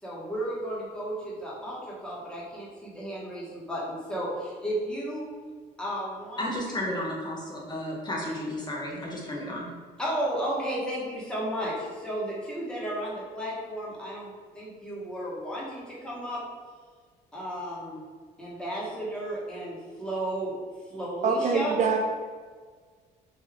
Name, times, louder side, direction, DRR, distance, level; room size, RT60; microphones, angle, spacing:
voice 1, 0.0-5.3 5.8-6.5 10.0-16.4 17.3-18.0 18.4-20.5 20.9-21.8, right 1 dB, 5° left, -7 dB, 1.2 m, -33 dB
voice 2, 6.4-9.7, left 1 dB, 25° left, -3 dB, 0.7 m, -33 dB
voice 3, 21.2-22.0, right 5 dB, 45° right, 2 dB, 0.4 m, -24 dB
3.3 x 2.6 x 3.6 m, 1.5 s
cardioid pair, 110°, 17 cm